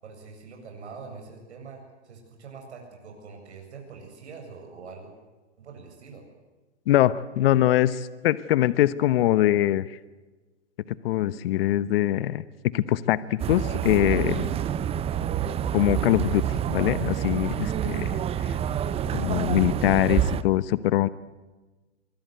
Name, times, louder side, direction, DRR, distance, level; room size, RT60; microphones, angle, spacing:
voice 1, 0.0-5.1 5.6-6.2, right 5 dB, 75° right, 2 dB, 7.6 m, -44 dB
voice 2, 6.9-10.0 11.0-12.4 12.7-14.5 15.7-16.4 16.7-18.2 18.5-18.6 19.1-21.1, left 13 dB, 55° left, 16 dB, 1.1 m, -23 dB
sound 1, 13.4-20.4, right 9 dB, 15° right, 0.8 m, -27 dB
24.0 x 24.0 x 8.1 m, 1.2 s
hypercardioid pair, 130°, 34 cm